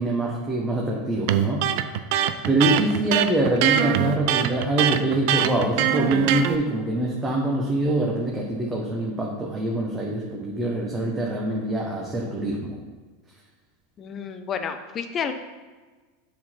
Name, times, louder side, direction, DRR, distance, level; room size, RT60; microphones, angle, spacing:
voice 1, 0.0-1.6 2.5-12.8, right 1 dB, 20° right, -3 dB, 1.2 m, -24 dB
Electric guitar, 1.3-6.6, right 11 dB, 60° right, 0.4 m, -23 dB
voice 2, 14.0-15.3, left 7 dB, 35° left, 8 dB, 0.7 m, -30 dB
7.4 x 4.2 x 4.5 m, 1.4 s
hypercardioid pair, 85°, 0 cm